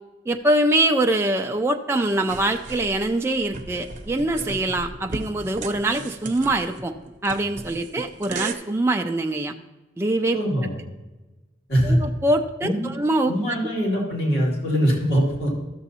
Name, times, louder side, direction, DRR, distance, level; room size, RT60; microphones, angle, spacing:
voice 1, 0.3-6.9 7.2-9.5 10.0-10.4 11.8-13.3, right 1 dB, 15° right, 4 dB, 0.3 m, -23 dB
sound 1, 2.3-8.5, right 3 dB, 45° right, 0.7 m, -36 dB
voice 2, 10.3-10.7 11.7-12.0 12.6-13.0 13.3-15.5, equal, 65° left, -4 dB, 2.4 m, -22 dB
13.0 x 6.9 x 2.8 m, 1.1 s
head